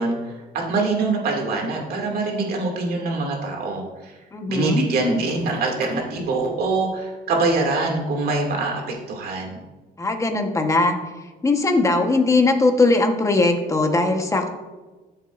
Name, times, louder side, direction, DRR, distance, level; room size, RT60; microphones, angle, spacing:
voice 1, 0.0-4.1 4.5-9.6, right 3 dB, 65° right, 0 dB, 2.4 m, -24 dB
voice 2, 4.3-4.8 10.0-11.0 11.4-14.5, left 3 dB, 20° left, 4 dB, 1.2 m, -19 dB
13.5 x 7.4 x 2.6 m, 1.2 s
cardioid pair, 110°, 17 cm